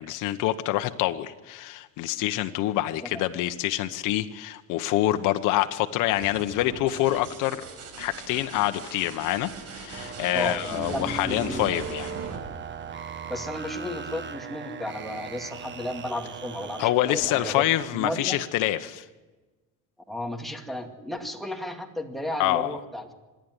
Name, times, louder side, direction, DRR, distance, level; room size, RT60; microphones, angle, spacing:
voice 1, 0.0-7.6 8.0-12.1 16.8-19.0 22.4-22.8, left 14 dB, 75° left, 8 dB, 1.2 m, -26 dB
sound 1, 6.0-13.6 15.4-15.9, right 5 dB, 55° right, 5.3 m, -42 dB
sound 2, 9.9-17.9, right 6 dB, 35° right, 1.5 m, -38 dB
voice 2, 10.3-11.7 13.3-17.6 17.9-18.4 20.1-23.1, left 1 dB, ahead, 3 dB, 2.2 m, -34 dB
26.0 x 10.5 x 9.7 m, 1.2 s
cardioid pair, 120°, 32 cm